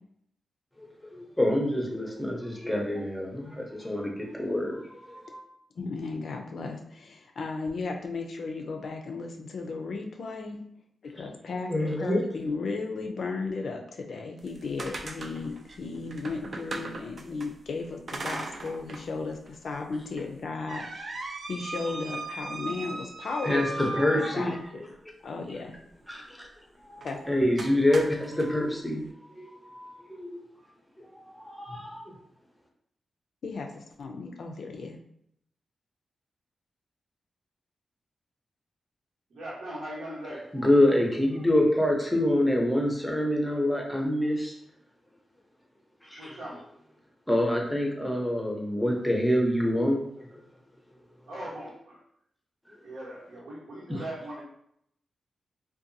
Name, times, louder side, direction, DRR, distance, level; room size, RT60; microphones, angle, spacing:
voice 1, 1.1-5.4 11.7-12.2 23.4-24.9 26.1-26.5 26.8-30.4 31.0-32.0 40.5-44.5 46.0-46.4 47.3-50.4 52.7-52.8, left 1 dB, 5° left, -1 dB, 0.6 m, -26 dB
voice 2, 5.8-10.6 11.0-21.2 21.5-24.8 25.2-25.7 27.0-27.2 33.4-35.0, left 4 dB, 70° left, 3 dB, 0.4 m, -35 dB
sound 1, 14.4-17.5 18.1-19.1 19.5-19.6 20.2-24.8 27.0-27.2 27.6-28.5, right 2 dB, 50° right, 0.3 m, -38 dB
voice 3, 39.3-40.5 46.2-46.6 51.3-52.0 52.8-54.4, right 1 dB, 90° right, -6 dB, 1.0 m, -39 dB
2.7 x 2.2 x 2.5 m, 0.72 s
wide cardioid pair, 100°, 0 cm